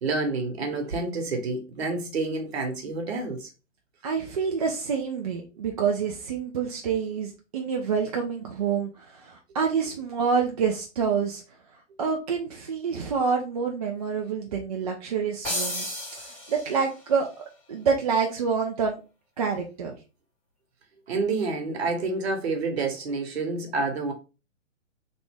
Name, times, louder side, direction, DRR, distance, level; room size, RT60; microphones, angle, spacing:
voice 1, 0.0-3.5 21.1-24.1, right 3 dB, 55° right, 1.2 m, -28 dB
voice 2, 4.0-11.4 12.0-15.9 16.2-17.3 17.7-19.0 19.4-19.9, right 6 dB, 30° right, 0.4 m, -27 dB
sound 1, 15.4-17.1, left 1 dB, 5° left, 1.6 m, -33 dB
3.1 x 2.5 x 3.4 m
figure-of-eight pair, 130°, 38 cm